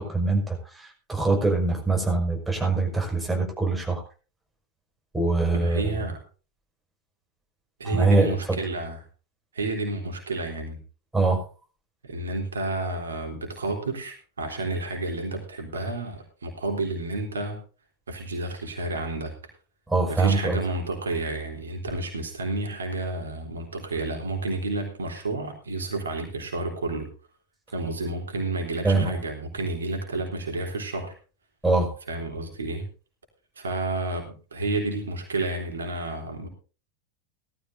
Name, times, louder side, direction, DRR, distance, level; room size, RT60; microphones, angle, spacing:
voice 1, 0.0-4.0 5.1-5.9 7.8-8.6 11.1-11.4 19.9-20.6 28.8-29.2 31.6-31.9, right 3 dB, 5° right, 0 dB, 5.9 m, -23 dB
voice 2, 5.5-6.2 7.8-9.0 9.5-10.8 12.0-17.6 18.1-19.3 20.1-27.1 27.7-31.1 32.1-32.9 33.5-36.5, right 2 dB, 75° right, 2 dB, 3.5 m, -30 dB
18.0 x 13.5 x 2.7 m, 0.36 s
figure-of-eight pair, 85°, 0 cm